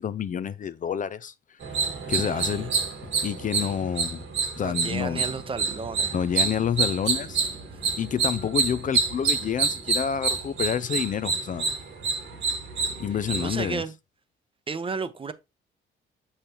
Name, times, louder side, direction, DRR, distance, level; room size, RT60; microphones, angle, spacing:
voice 1, 0.0-1.6 2.1-2.7 3.2-4.2 4.6-5.3 6.1-7.4 8.0-11.7 13.0-13.8, left 8 dB, 40° left, 0.4 m, -28 dB
sound 1, 1.6-13.7, right 5 dB, 75° right, 2.0 m, -28 dB
voice 2, 2.1-2.7 4.6-6.1 13.3-13.9 14.7-15.3, right 4 dB, 25° right, 0.7 m, -33 dB
6.8 x 5.5 x 2.9 m
cardioid pair, 90°, 20 cm